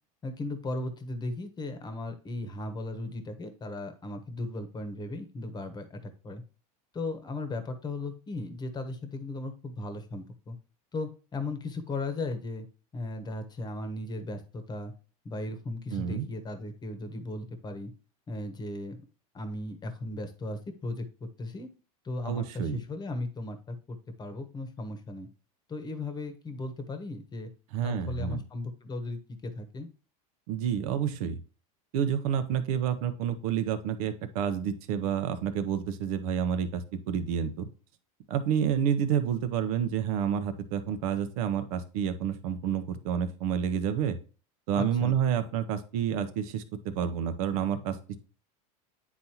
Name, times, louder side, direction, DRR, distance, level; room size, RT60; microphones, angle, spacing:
voice 1, 0.2-6.4 6.9-10.6 10.9-12.7 12.9-14.9 15.2-17.9 18.3-19.0 19.3-21.7 22.0-25.3 25.7-27.5 27.8-29.9 44.7-45.2, left 2 dB, 20° left, 8 dB, 1.1 m, -36 dB
voice 2, 15.9-16.3 22.2-22.8 27.7-28.4 30.5-31.4 31.9-37.7 38.3-44.2 44.7-48.2, right 8 dB, 70° right, 10 dB, 0.9 m, -29 dB
9.5 x 4.1 x 2.9 m, 0.36 s
supercardioid pair, 120°, 19 cm